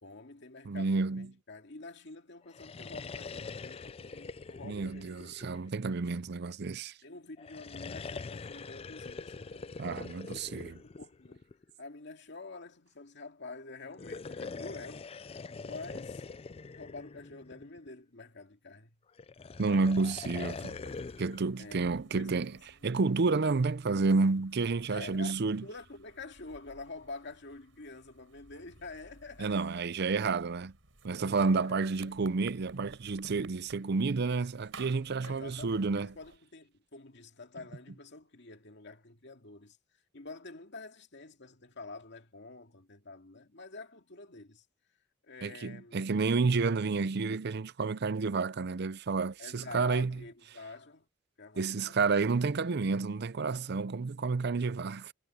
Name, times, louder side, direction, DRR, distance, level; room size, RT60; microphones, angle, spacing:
voice 1, 0.0-5.2 7.0-10.4 10.7-11.5 11.8-16.3 16.7-19.0 21.6-22.9 24.9-29.8 31.4-32.4 35.2-39.8 40.1-44.7 45.2-46.1 49.4-51.1 51.4-52.2, left 3 dB, 60° left, 2.4 m, -48 dB
voice 2, 0.7-1.3 4.6-6.9 9.8-10.8 19.6-20.8 21.2-22.5 22.8-25.6 29.4-30.7 31.0-36.1 45.4-50.1 51.6-55.1, right 4 dB, 55° right, 0.6 m, -30 dB
sound 1, 2.5-6.1 7.4-11.7 13.9-17.9 19.2-21.5, left 4 dB, 30° left, 0.4 m, -43 dB
sound 2, 19.9-36.4, right 3 dB, 70° right, 7.3 m, -57 dB
head